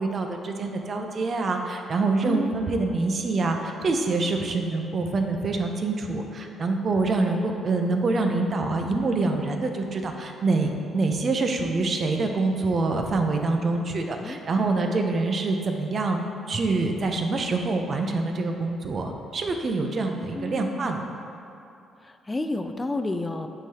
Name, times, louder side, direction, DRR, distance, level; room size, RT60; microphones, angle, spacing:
voice 1, 0.0-16.2 16.5-21.0, right 3 dB, 45° right, 4 dB, 0.6 m, -26 dB
voice 2, 2.2-2.6 13.9-14.4 20.3-21.1 22.0-23.5, left 2 dB, 20° left, 7 dB, 0.3 m, -31 dB
9.0 x 3.9 x 2.8 m, 2.7 s
cardioid pair, 90°, 0 cm